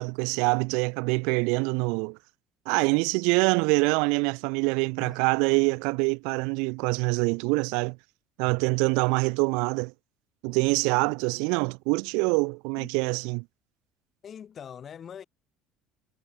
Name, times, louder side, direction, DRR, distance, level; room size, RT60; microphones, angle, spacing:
voice 1, 0.0-2.2 2.7-8.0 8.4-9.9 10.4-13.4, right 33 dB, 80° right, 0.5 m, -25 dB
voice 2, 14.2-15.2, left 8 dB, 30° left, 1.3 m, -42 dB
cardioid pair, 160°, 0 cm